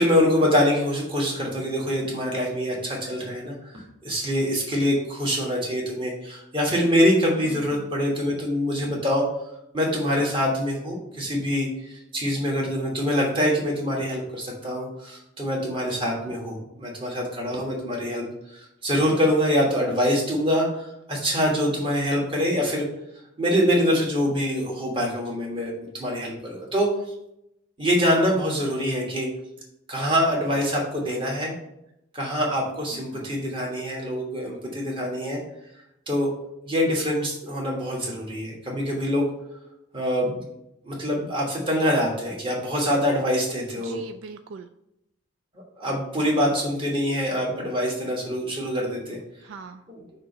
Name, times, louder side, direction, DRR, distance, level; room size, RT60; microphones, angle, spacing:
voice 1, 0.0-9.3 9.7-22.9 23.4-26.9 27.8-29.3 29.9-31.5 32.1-35.4 36.1-36.3 36.6-39.3 39.9-40.4 40.8-44.0 45.8-49.2 49.9-50.0, equal, 25° right, -2 dB, 1.4 m, -25 dB
voice 2, 7.4-7.9 32.9-33.4 43.8-44.7 49.4-49.8, right 4 dB, 70° right, 8 dB, 0.3 m, -42 dB
6.1 x 2.9 x 5.3 m, 0.83 s
head